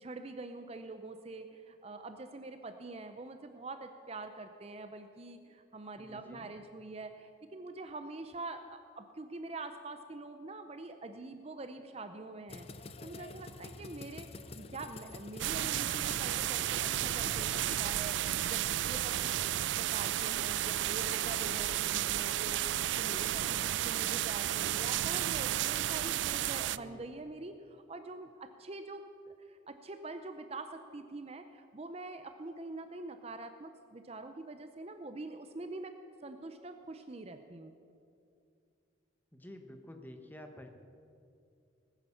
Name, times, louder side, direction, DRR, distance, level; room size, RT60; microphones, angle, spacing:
voice 1, 0.0-14.3 14.5-19.4 19.8-35.9 36.2-37.8, right 2 dB, 30° right, 8 dB, 0.6 m, -45 dB
voice 2, 6.0-6.5 19.2-19.7 26.7-27.1 39.3-40.7, left 1 dB, 10° left, 5 dB, 1.2 m, -50 dB
sound 1, 12.5-17.8, left 3 dB, 30° left, 0.6 m, -47 dB
sound 2, 15.4-26.8, right 13 dB, 70° right, 0.3 m, -32 dB
19.0 x 9.9 x 7.1 m, 2.5 s
head